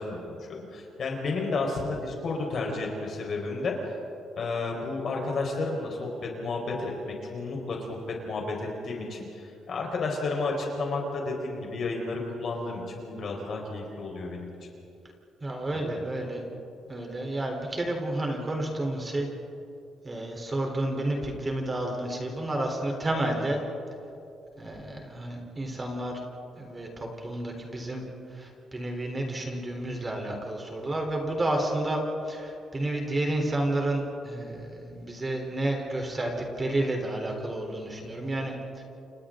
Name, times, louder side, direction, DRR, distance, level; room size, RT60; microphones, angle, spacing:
voice 1, 0.0-3.7 4.4-14.5 15.7-15.8, left 3 dB, 50° left, 0 dB, 4.8 m, -32 dB
voice 2, 15.4-16.5 16.9-19.3 20.0-23.6 24.6-26.2 26.5-28.0 28.3-38.8, right 1 dB, 20° right, 1 dB, 4.0 m, -31 dB
29.0 x 29.0 x 3.9 m, 2.7 s
cardioid pair, 120°, 0 cm